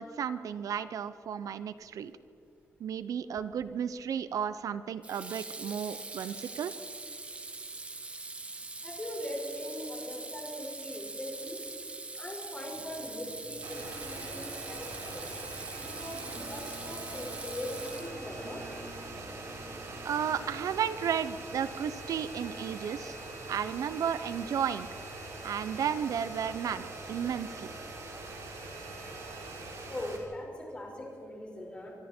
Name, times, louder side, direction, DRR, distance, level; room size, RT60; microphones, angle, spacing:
voice 1, 0.0-2.1 2.8-6.7 20.0-23.2 23.5-24.9 25.4-27.7, right 8 dB, 80° right, 13 dB, 0.8 m, -33 dB
Water tap faucet / Sink (filling or washing), 3.4-3.7 5.0-18.4, right 3 dB, 20° right, 1.4 m, -43 dB
voice 2, 8.8-11.6 12.2-15.3 15.8-18.7 29.9-31.9, left 1 dB, 20° left, -1 dB, 5.2 m, -41 dB
sound 1, 12.7-21.2, right 1 dB, 40° right, 3.0 m, -51 dB
sound 2, 13.6-30.2, right 2 dB, 60° right, 4.2 m, -43 dB
25.0 x 24.5 x 4.5 m, 2.7 s
wide cardioid pair, 180°, 6 cm